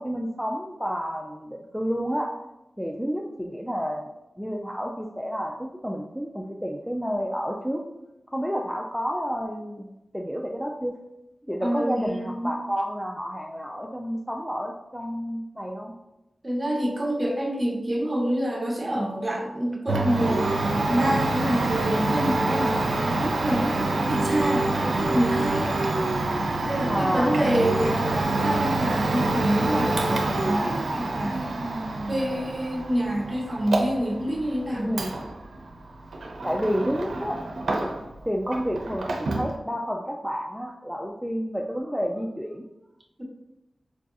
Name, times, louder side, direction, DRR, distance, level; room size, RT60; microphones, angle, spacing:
voice 1, 0.0-2.3 2.8-4.1 4.4-7.8 8.3-10.9 11.5-15.9 26.9-27.5 34.7-35.2 36.4-37.4 37.8-37.9 38.2-42.6, equal, ahead, 0 dB, 0.3 m, -30 dB
voice 2, 11.6-12.6 16.4-25.9 26.6-31.5 32.1-35.0 43.2-43.3, right 1 dB, 30° right, 0 dB, 0.8 m, -27 dB
Domestic sounds home sounds, 19.9-38.2 38.5-39.5, right 2 dB, 90° right, 0.4 m, -27 dB
4.6 x 2.5 x 2.4 m, 0.92 s
wide cardioid pair, 65°, 0 cm